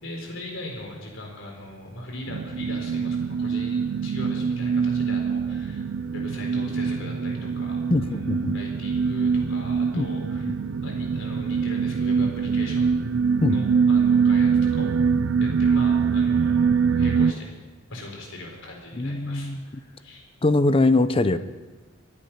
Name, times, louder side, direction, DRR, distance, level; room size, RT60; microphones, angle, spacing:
voice 1, 0.0-5.9 6.1-10.5 10.8-12.9 13.5-14.9 15.4-17.5 17.9-20.2, left 1 dB, 70° left, 0 dB, 4.2 m, -40 dB
sound 1, 2.3-17.3, right 6 dB, 65° right, 0.5 m, -23 dB
voice 2, 7.9-8.5 9.9-10.1 10.5-10.6 13.4-13.6 18.9-19.6 20.4-21.4, left 2 dB, 30° left, 12 dB, 0.6 m, -22 dB
25.5 x 8.5 x 5.7 m, 1.3 s
head